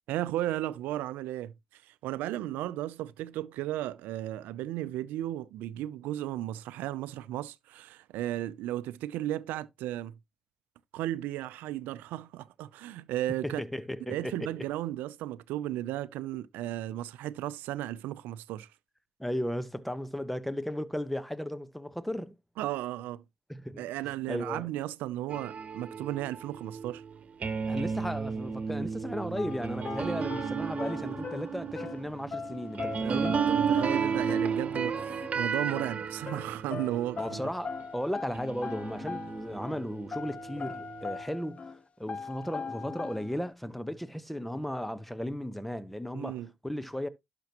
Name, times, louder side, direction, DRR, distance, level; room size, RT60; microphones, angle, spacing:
voice 1, 0.1-10.2 10.9-13.6 14.0-18.7 22.6-23.2 23.8-27.0 33.0-37.4 46.1-46.5, right 14 dB, 85° right, 0.5 m, -35 dB
voice 2, 13.4-14.5 19.2-22.4 23.5-23.9 24.3-24.7 27.6-33.4 37.2-46.4 46.6-47.1, equal, 5° left, 1.1 m, -35 dB
sound 1, 25.3-37.8 38.3-41.2, right 6 dB, 50° right, 1.5 m, -33 dB
sound 2, 29.4-39.8 40.1-41.8 42.1-43.5, left 5 dB, 45° left, 0.5 m, -40 dB
11.5 x 5.9 x 3.0 m
supercardioid pair, 60°, 3 cm